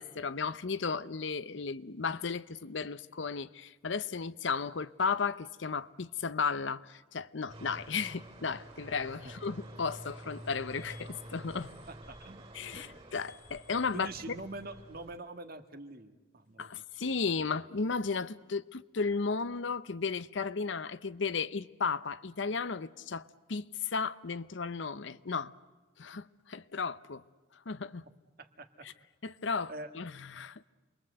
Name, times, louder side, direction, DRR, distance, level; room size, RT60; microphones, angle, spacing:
voice 1, 0.0-11.7 12.5-14.4 16.6-25.5 26.0-27.2 27.7-28.0 29.2-30.6, left 5 dB, 70° left, 0.7 m, -34 dB
sound 1, 7.5-15.2, right 1 dB, 25° right, 3.5 m, -49 dB
voice 2, 11.9-12.4 12.7-13.0 13.9-16.7 28.4-28.9 29.7-29.9, right 2 dB, 50° right, 1.7 m, -45 dB
28.0 x 22.0 x 7.9 m
head